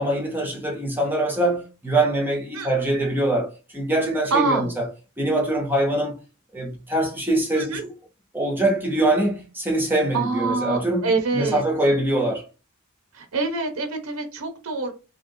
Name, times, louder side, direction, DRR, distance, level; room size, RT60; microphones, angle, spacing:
voice 1, 0.0-4.9 5.2-6.2 6.5-7.9 8.3-12.5, right 1 dB, 10° right, 0.6 m, -23 dB
voice 2, 4.3-4.7 7.6-7.8 10.1-11.6 13.1-14.9, right 3 dB, 80° right, 0.7 m, -25 dB
2.8 x 2.8 x 2.6 m
head